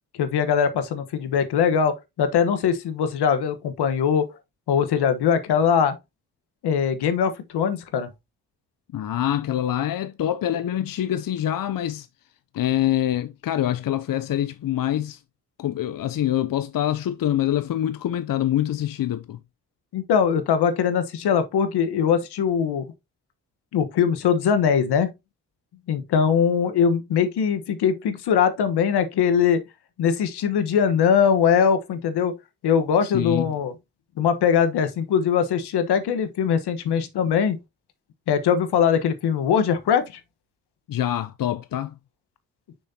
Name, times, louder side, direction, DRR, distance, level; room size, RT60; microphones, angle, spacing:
voice 1, 0.2-4.3 4.7-6.0 6.6-8.1 19.9-22.9 23.7-25.1 25.9-29.6 30.0-32.3 32.6-33.7 34.2-37.6 38.3-40.2, left 7 dB, 75° left, 1.3 m, -21 dB
voice 2, 8.9-12.1 12.5-15.2 15.6-19.4 33.0-33.5 40.9-41.9, left 12 dB, 55° left, 0.7 m, -25 dB
6.4 x 6.1 x 2.8 m
supercardioid pair, 45°, 40 cm